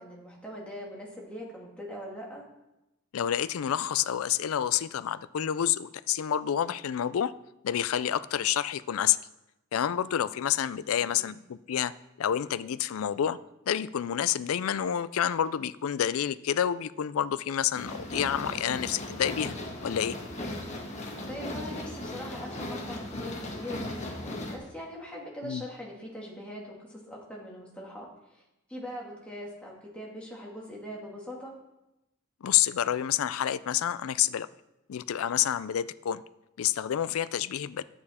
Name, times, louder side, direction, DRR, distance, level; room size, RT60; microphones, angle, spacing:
voice 1, 0.0-2.5 11.0-11.3 21.3-28.4 28.7-31.5, equal, 5° left, -3 dB, 2.0 m, -42 dB
voice 2, 3.1-7.3 7.6-9.2 9.7-11.9 12.2-13.4 13.7-19.6 19.8-20.2 25.4-25.6 32.4-34.5 34.9-36.2 36.6-37.8, left 10 dB, 80° left, 16 dB, 0.4 m, -28 dB
sound 1, 17.7-24.6, left 1 dB, 35° left, 1.4 m, -37 dB
10.5 x 8.6 x 4.3 m, 0.93 s
head